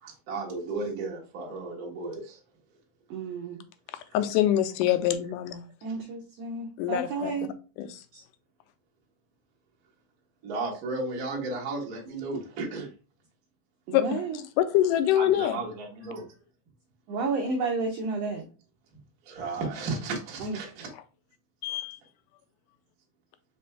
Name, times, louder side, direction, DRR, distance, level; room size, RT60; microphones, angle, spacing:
voice 1, 0.0-2.4 5.9-6.0 10.4-12.9 15.0-16.3 19.2-20.9, right 3 dB, 65° right, 0.9 m, -34 dB
voice 2, 3.1-3.6 5.8-7.5 8.1-8.2 13.9-14.4 17.1-18.4 20.4-20.6, right 3 dB, 80° right, 1.4 m, -31 dB
voice 3, 4.1-5.6 6.8-7.3 7.8-8.0 13.9-15.6 21.6-22.0, left 12 dB, 90° left, 2.1 m, -25 dB
5.0 x 3.3 x 3.2 m
omnidirectional pair, 3.6 m